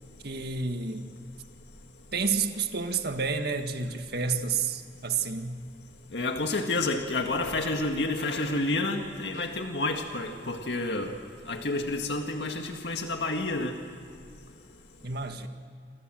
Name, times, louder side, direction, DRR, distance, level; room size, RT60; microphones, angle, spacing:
voice 1, 0.2-1.1 2.1-5.6 15.0-15.5, right 5 dB, 65° right, 6 dB, 1.9 m, -30 dB
voice 2, 6.1-11.2 11.5-13.8, left 2 dB, 75° left, 4 dB, 2.0 m, -29 dB
27.5 x 27.5 x 7.8 m, 2.2 s
head